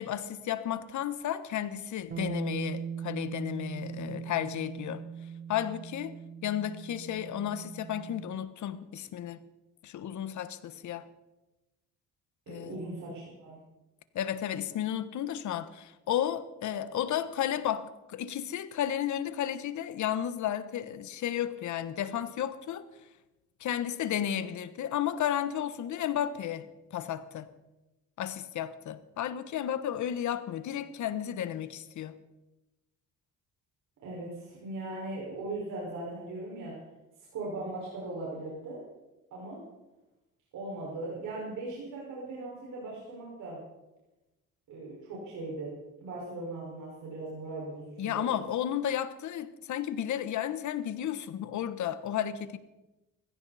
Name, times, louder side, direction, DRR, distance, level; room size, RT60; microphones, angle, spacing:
voice 1, 0.0-5.0 5.5-9.4 9.8-11.1 12.5-12.8 14.1-22.9 23.6-27.5 28.2-32.2 48.0-52.6, left 10 dB, 75° left, 1.2 m, -33 dB
Bass guitar, 2.1-8.4, right 7 dB, 30° right, 0.7 m, -39 dB
voice 2, 12.5-13.6 34.0-36.8 37.3-38.8 39.3-39.6 40.5-43.6 44.7-45.7 46.0-48.3, right 2 dB, 85° right, 5.4 m, -39 dB
20.5 x 15.5 x 4.2 m
cardioid pair, 90°, 30 cm